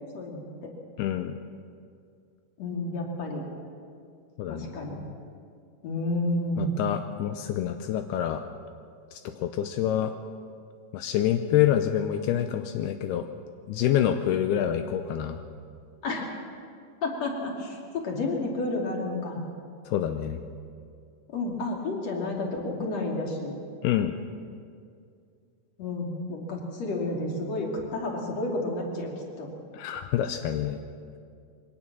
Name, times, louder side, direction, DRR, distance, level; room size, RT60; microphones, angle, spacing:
voice 1, 0.1-0.7 2.6-3.4 4.5-5.0 5.8-6.8 16.0-16.2 17.0-19.4 21.3-23.5 25.8-29.1 29.4-29.5, left 2 dB, 40° left, -1 dB, 3.4 m, -31 dB
voice 2, 1.0-1.4 4.4-5.1 6.6-8.4 9.1-10.1 10.9-13.3 13.7-15.4 19.9-20.4 23.8-24.1 29.7-30.8, left 11 dB, 85° left, 7 dB, 2.3 m, -27 dB
22.5 x 18.5 x 6.2 m, 2.3 s
omnidirectional pair, 5.3 m